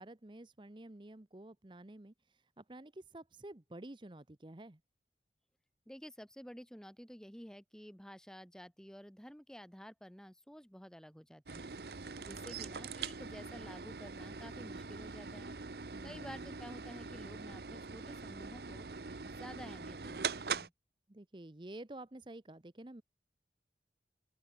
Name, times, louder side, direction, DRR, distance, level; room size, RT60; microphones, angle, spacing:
voice 1, 0.0-4.8 15.9-16.5 21.1-23.0, right 1 dB, 25° right, 0.8 m, -51 dB
voice 2, 5.8-11.7 12.2-15.5 16.0-18.9 19.2-20.7, equal, 5° left, 1.6 m, -51 dB
sound 1, 11.5-20.7, right 5 dB, 65° right, 0.9 m, -43 dB
open air
head